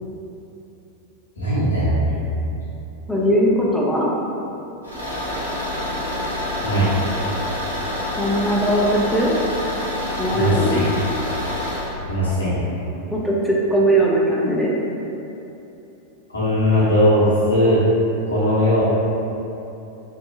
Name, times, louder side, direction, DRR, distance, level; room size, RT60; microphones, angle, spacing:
voice 1, 1.4-2.1 6.6-6.9 10.3-10.9 12.1-12.6 16.3-17.8 18.3-18.8, equal, 75° left, -9 dB, 0.8 m, -19 dB
voice 2, 3.1-4.1 8.2-9.3 10.2-10.8 13.1-14.7, right 1 dB, 5° left, -5 dB, 0.4 m, -19 dB
Car / Engine, 4.8-11.9, left 1 dB, 75° right, 0.6 m, -27 dB
2.7 x 2.2 x 2.3 m, 2.9 s
figure-of-eight pair, 90°, 0 cm